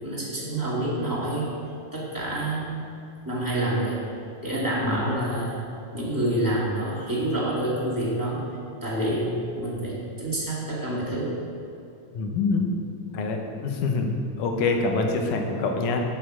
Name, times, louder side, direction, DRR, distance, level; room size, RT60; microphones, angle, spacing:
voice 1, 0.0-1.5 1.9-2.8 3.3-4.0 4.4-5.6 5.9-8.4 8.8-11.4 12.6-12.7, right 1 dB, 5° right, -7 dB, 1.9 m, -27 dB
voice 2, 4.8-5.2 12.1-12.7 13.1-16.0, left 3 dB, 90° left, 3 dB, 2.5 m, -26 dB
8.5 x 6.8 x 7.5 m, 2.6 s
omnidirectional pair, 3.5 m